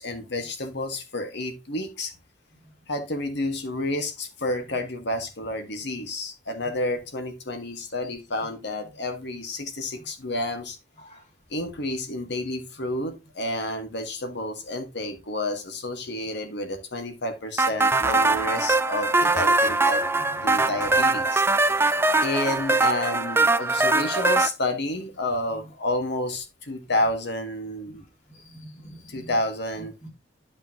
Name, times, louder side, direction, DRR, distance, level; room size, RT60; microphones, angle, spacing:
voice 1, 0.0-2.1 2.9-10.8 11.5-20.0 20.4-21.4 22.2-28.0 29.1-30.0, left 1 dB, 60° left, 1.5 m, -30 dB
sound 1, 17.6-24.5, right 2 dB, 10° right, 0.4 m, -22 dB
voice 2, 28.3-29.3 30.0-30.1, equal, 35° left, 2.2 m, -45 dB
11.0 x 5.2 x 2.9 m
head